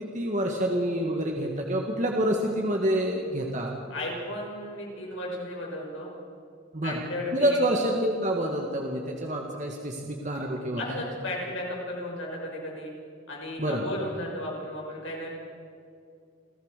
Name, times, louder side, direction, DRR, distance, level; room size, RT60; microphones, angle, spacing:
voice 1, 0.0-3.7 6.7-7.0 7.3-11.0 13.6-13.8, right 1 dB, 35° right, 1 dB, 1.8 m, -27 dB
voice 2, 3.9-6.1 6.8-7.6 10.8-12.9 13.3-15.3, left 1 dB, 75° left, -2 dB, 6.4 m, -34 dB
28.5 x 15.0 x 6.7 m, 2.4 s
head